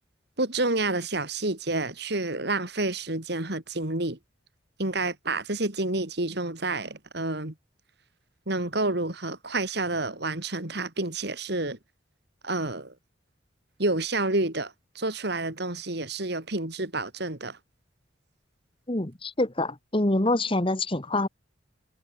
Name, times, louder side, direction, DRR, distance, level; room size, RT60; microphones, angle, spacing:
voice 1, 0.4-4.2 4.8-7.5 8.5-11.8 12.4-12.9 13.8-17.6, right 2 dB, 55° right, 2.9 m, -29 dB
voice 2, 18.9-21.3, left 2 dB, 25° left, 1.5 m, -26 dB
head